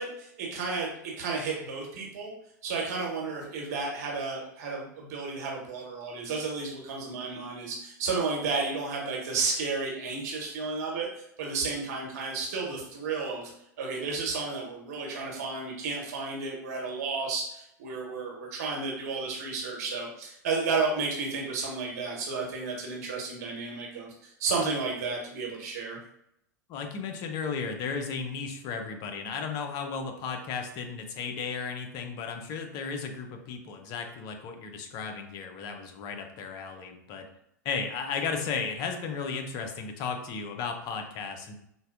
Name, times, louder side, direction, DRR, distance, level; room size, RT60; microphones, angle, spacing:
voice 1, 0.0-2.3 2.6-13.5 13.8-26.0, right 4 dB, 60° right, -1 dB, 1.1 m, -32 dB
voice 2, 26.7-37.3 37.6-41.5, left 5 dB, 45° left, 5 dB, 0.6 m, -34 dB
3.9 x 2.2 x 2.5 m, 0.77 s
figure-of-eight pair, 90°, 10 cm